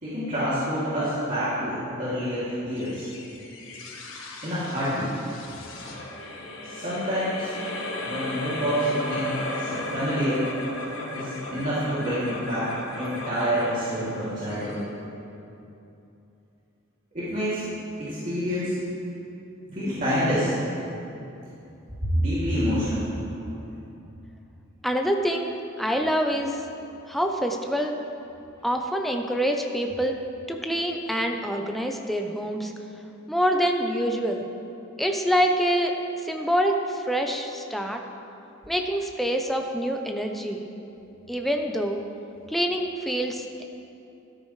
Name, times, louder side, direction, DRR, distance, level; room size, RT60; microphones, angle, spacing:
voice 1, 0.0-3.1 4.4-5.1 6.7-7.5 8.0-10.4 11.1-14.8 17.1-17.6 18.0-18.7 19.7-20.5 22.0-23.0, equal, 40° right, -12 dB, 2.7 m, -27 dB
sound 1, 2.8-15.4, left 2 dB, 75° left, 1.5 m, -36 dB
voice 2, 24.8-25.5 25.8-26.6 27.1-28.0 28.6-30.2 30.5-32.7 33.3-34.5 35.0-36.0 36.2-38.0 38.7-40.6 41.3-42.0 42.5-43.6, equal, ahead, 3 dB, 0.7 m, -26 dB
13.0 x 13.0 x 3.3 m, 2.8 s
head